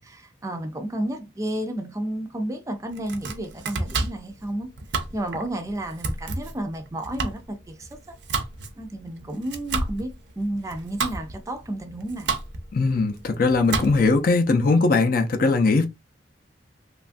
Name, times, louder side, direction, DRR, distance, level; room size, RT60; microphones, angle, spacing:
voice 1, 0.1-4.7 5.1-8.1 8.8-12.4, right 1 dB, 20° right, 0.4 m, -32 dB
Domestic sounds home sounds, 2.9-14.2, right 4 dB, 70° right, 0.6 m, -32 dB
voice 2, 12.7-15.9, left 3 dB, 50° left, 0.5 m, -20 dB
3.1 x 2.3 x 2.5 m
head